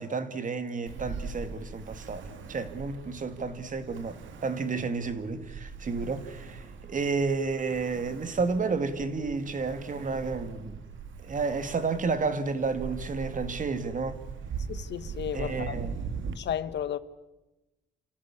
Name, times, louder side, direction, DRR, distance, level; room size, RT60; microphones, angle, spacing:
voice 1, 0.0-4.2 4.4-10.8 11.2-14.2 15.3-16.1, right 4 dB, 40° right, 2.1 m, -31 dB
Ocean, 0.9-16.3, right 5 dB, 70° right, 2.3 m, -41 dB
voice 2, 14.7-15.7 16.4-17.0, left 9 dB, 60° left, 1.1 m, -33 dB
28.5 x 13.5 x 9.8 m
cardioid pair, 90°, 20 cm